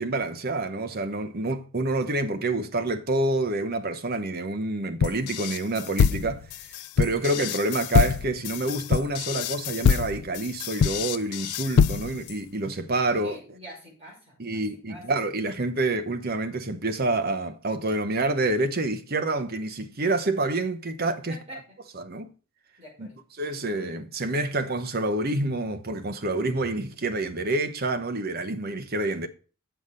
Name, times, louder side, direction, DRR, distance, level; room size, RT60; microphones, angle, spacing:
voice 1, 0.0-6.5 7.0-13.4 14.4-21.6 21.9-22.3 23.0-23.1 23.4-29.3, right 2 dB, 45° right, 1.0 m, -27 dB
sound 1, 5.0-12.3, left 6 dB, 85° left, 0.4 m, -24 dB
voice 2, 13.1-14.6 14.9-15.0 21.3-21.8 22.8-23.1, equal, 30° right, 5.7 m, -45 dB
8.0 x 6.6 x 5.5 m
head